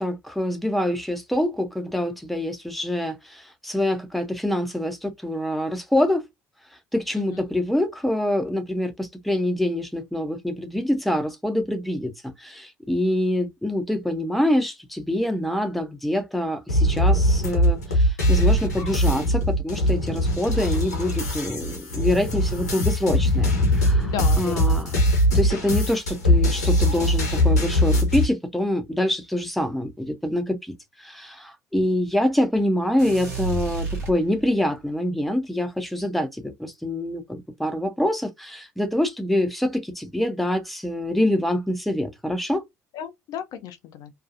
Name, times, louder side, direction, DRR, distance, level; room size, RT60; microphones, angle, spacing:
voice 1, 0.0-6.2 6.9-24.9 25.3-42.6, left 1 dB, ahead, 0.6 m, -25 dB
sound 1, 16.7-28.2, equal, 80° left, 0.9 m, -21 dB
voice 2, 24.0-24.8 42.9-44.1, left 8 dB, 50° left, 0.4 m, -34 dB
sound 2, 33.0-34.8, right 3 dB, 80° right, 1.0 m, -31 dB
2.6 x 2.3 x 2.4 m
figure-of-eight pair, 55°, 8 cm